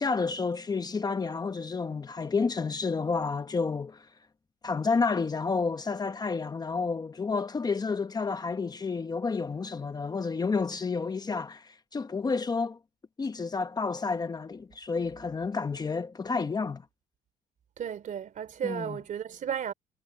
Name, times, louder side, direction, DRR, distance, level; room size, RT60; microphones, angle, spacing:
voice 1, 0.0-4.1 4.6-12.8 13.2-16.8 18.6-19.0, left 4 dB, 25° left, 1.0 m, -30 dB
voice 2, 17.8-19.7, right 8 dB, 50° right, 3.4 m, -34 dB
cardioid pair, 110°, 17 cm